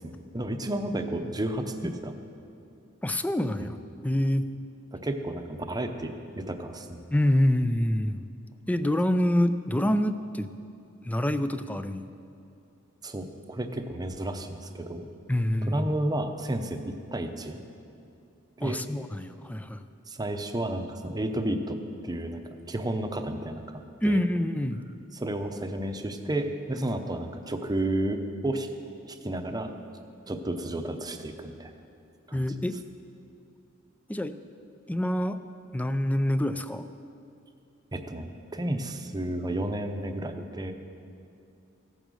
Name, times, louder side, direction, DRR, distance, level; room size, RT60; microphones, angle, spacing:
voice 1, 0.0-2.2 3.6-3.7 4.9-7.0 13.0-15.1 15.6-17.6 18.6-18.8 20.1-22.4 22.7-24.2 25.1-28.7 29.0-29.7 30.3-31.7 32.3-32.5 37.9-40.7, right 1 dB, 20° right, 6 dB, 0.8 m, -32 dB
voice 2, 3.0-3.7 4.0-4.4 7.1-8.3 8.7-10.5 11.1-12.0 15.3-15.9 18.6-19.8 24.0-24.8 32.3-32.7 34.1-34.3 34.9-35.4 35.7-36.8, left 1 dB, 5° left, 11 dB, 0.4 m, -26 dB
15.5 x 9.1 x 6.3 m, 2.6 s
head